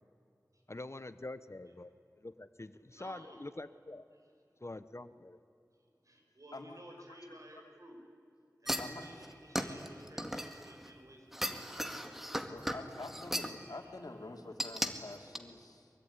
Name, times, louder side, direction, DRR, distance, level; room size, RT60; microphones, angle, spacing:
voice 1, 0.7-1.9 2.2-4.0 4.6-5.4, left 2 dB, 45° left, 13 dB, 1.0 m, -45 dB
voice 2, 2.9-3.5 4.1-4.2 5.7-8.0 8.6-11.6 13.7-14.1, right 1 dB, 60° right, 2 dB, 5.9 m, -55 dB
voice 3, 7.1-7.6 8.8-9.1 12.5-15.9, left 2 dB, 80° left, 3 dB, 2.7 m, -47 dB
sound 1, 8.7-10.9 11.3-13.6 14.6-14.9 15.4-15.5, equal, 5° right, 2.1 m, -37 dB
23.5 x 23.0 x 9.8 m, 2.5 s
wide cardioid pair, 50°, 6 cm